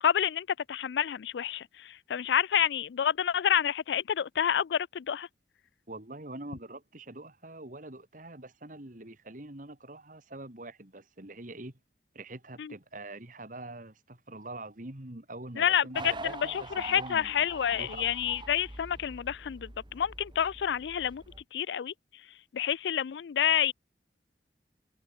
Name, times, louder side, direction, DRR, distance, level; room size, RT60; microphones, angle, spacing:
voice 1, 0.0-5.3 12.6-12.7 15.6-21.2 21.5-21.9 22.5-23.7, left 9 dB, 75° left, 0.4 m, -28 dB
voice 2, 5.9-11.7 12.1-17.5 17.7-18.1, right 2 dB, 45° right, 2.4 m, -44 dB
sound 1, 15.9-21.4, right 2 dB, 25° right, 2.4 m, -44 dB
head